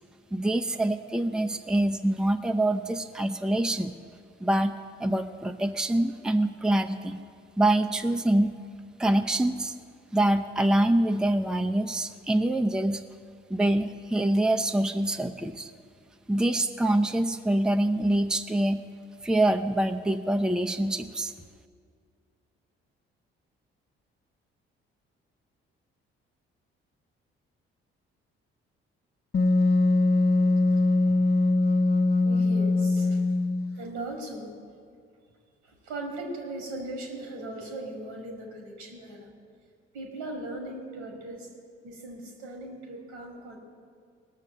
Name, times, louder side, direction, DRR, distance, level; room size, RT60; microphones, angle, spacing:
voice 1, 0.3-3.9 4.4-4.7 5.0-7.2 7.6-8.5 9.0-9.7 10.1-13.0 13.5-15.7 16.3-18.8 19.2-21.3, right 1 dB, ahead, 6 dB, 0.7 m, -25 dB
Wind instrument woodwind instrument, 29.3-33.8, left 2 dB, 35° left, 0.7 m, -22 dB
voice 2, 30.4-31.2 32.2-33.2 33.7-34.5 35.6-39.3 39.9-41.5 41.8-43.6, right 1 dB, 80° right, 1 dB, 2.4 m, -39 dB
18.5 x 6.6 x 7.3 m, 2.1 s
hypercardioid pair, 45°, 30 cm